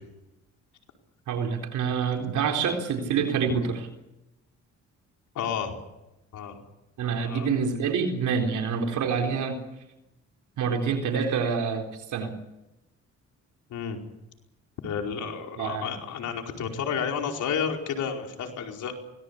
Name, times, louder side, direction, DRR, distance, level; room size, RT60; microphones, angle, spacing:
voice 1, 1.3-3.8 7.0-9.6 10.6-12.3 15.6-15.9, right 6 dB, 75° right, 3 dB, 4.1 m, -27 dB
voice 2, 5.3-5.7 6.3-6.6 7.1-7.5 13.7-14.0 14.8-18.9, left 7 dB, 75° left, 3 dB, 4.9 m, -31 dB
24.5 x 19.0 x 8.5 m, 0.94 s
cardioid pair, 90°, 30 cm